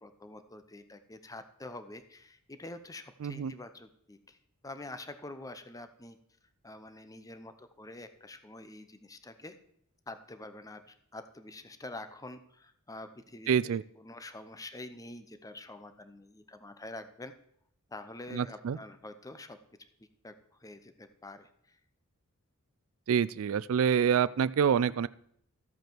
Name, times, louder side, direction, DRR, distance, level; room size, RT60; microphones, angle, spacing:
voice 1, 0.0-4.4 4.6-6.2 6.6-9.5 10.1-17.3 17.9-19.6 20.2-21.8, left 2 dB, 15° left, 10 dB, 0.7 m, -46 dB
voice 2, 3.2-3.5 13.5-13.8 18.3-18.8 23.1-25.1, right 7 dB, 70° right, 17 dB, 0.4 m, -27 dB
13.5 x 8.0 x 4.6 m, 0.69 s
head